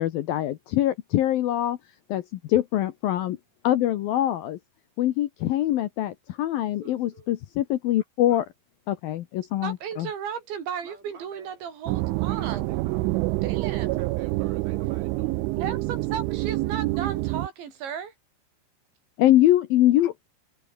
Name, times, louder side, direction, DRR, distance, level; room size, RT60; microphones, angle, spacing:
voice 1, 0.0-1.8 2.1-3.4 3.6-4.6 5.0-8.5 8.9-10.1 19.2-20.2, left 13 dB, 75° left, 2.2 m, -23 dB
voice 2, 6.7-7.3 10.8-11.6 12.3-13.4 13.8-15.3, right 3 dB, 45° right, 9.2 m, -49 dB
voice 3, 9.6-12.8 13.4-14.0 15.5-18.1, right 8 dB, 70° right, 6.7 m, -35 dB
sound 1, 11.9-17.5, right 21 dB, 90° right, 3.2 m, -27 dB
omnidirectional pair, 5.4 m